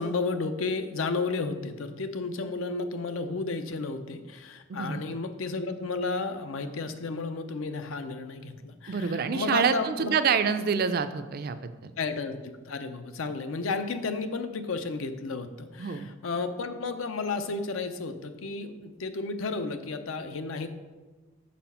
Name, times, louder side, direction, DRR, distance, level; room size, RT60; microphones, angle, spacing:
voice 1, 0.0-10.1 12.0-12.4 12.7-20.7, left 3 dB, 80° left, 8 dB, 0.6 m, -32 dB
voice 2, 8.9-11.9 15.8-16.1, right 6 dB, 45° right, 10 dB, 0.4 m, -27 dB
6.1 x 4.2 x 5.5 m, 1.2 s
head